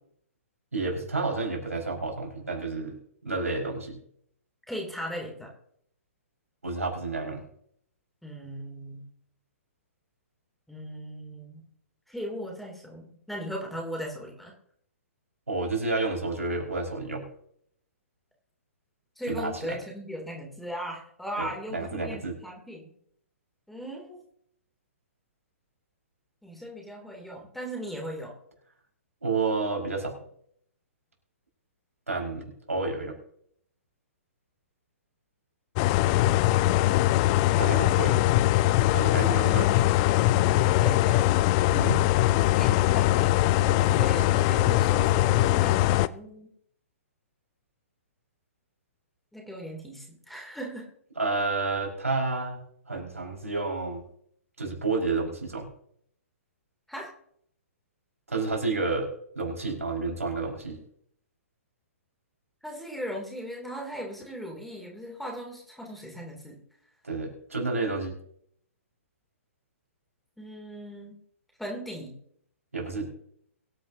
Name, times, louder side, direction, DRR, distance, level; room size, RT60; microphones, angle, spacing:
voice 1, 0.7-3.0 3.2-4.0 6.6-7.4 15.5-17.3 19.3-19.8 21.4-22.3 29.2-30.1 32.1-33.1 37.6-38.2 38.9-39.7 41.7-42.0 51.1-54.0 54.6-55.7 58.3-60.8 67.0-68.1 72.7-73.1, right 3 dB, 80° right, 0 dB, 5.2 m, -30 dB
voice 2, 4.7-5.5 8.2-9.0 10.7-11.6 12.1-14.5 19.2-22.9 23.7-24.2 26.4-28.3 36.6-37.2 39.4-39.7 40.4-41.4 42.2-46.5 49.3-50.9 56.9-57.1 62.6-66.6 70.4-71.2 71.6-72.1, equal, ahead, 0 dB, 2.9 m, -38 dB
sound 1, 35.8-46.1, left 15 dB, 30° left, 0.5 m, -22 dB
23.0 x 10.5 x 2.8 m, 0.68 s
figure-of-eight pair, 120°, 8 cm